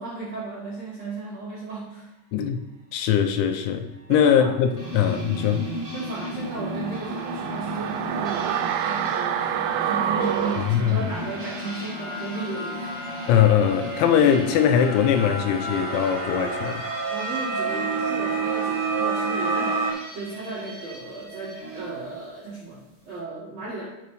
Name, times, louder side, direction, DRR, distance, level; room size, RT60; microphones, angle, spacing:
voice 1, 0.0-2.1 4.1-4.6 4.8-5.1 5.9-12.9 17.1-23.8, right 3 dB, 65° right, 1.7 m, -35 dB
voice 2, 2.3-2.6 2.9-5.6 10.6-11.1 13.3-16.8, left 8 dB, 80° left, 2.8 m, -21 dB
sound 1, 4.8-21.9, right 3 dB, 25° right, 1.1 m, -34 dB
sound 2, 5.4-5.5 5.8-19.9, right 2 dB, 45° right, 2.5 m, -33 dB
sound 3, 6.4-11.6 11.9-12.0, right 9 dB, 90° right, 3.1 m, -28 dB
15.0 x 5.8 x 3.1 m
omnidirectional pair, 5.5 m